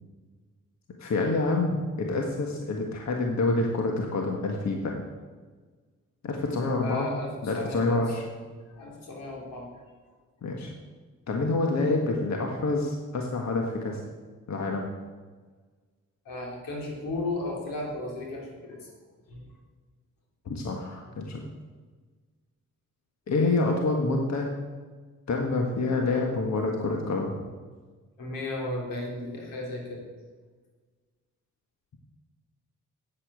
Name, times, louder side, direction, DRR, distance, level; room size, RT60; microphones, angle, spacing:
voice 1, 1.0-4.9 6.2-7.1 7.4-8.2 10.4-10.7 11.3-14.0 14.5-14.9 20.4-21.4 23.3-24.5 25.3-27.5, left 3 dB, 55° left, 1 dB, 1.6 m, -27 dB
voice 2, 6.8-8.1 8.7-9.7 16.2-18.9 19.3-19.5 28.2-30.0, left 2 dB, 85° left, -1 dB, 3.2 m, -35 dB
8.6 x 8.4 x 8.1 m, 1.4 s
cardioid pair, 75°, 32 cm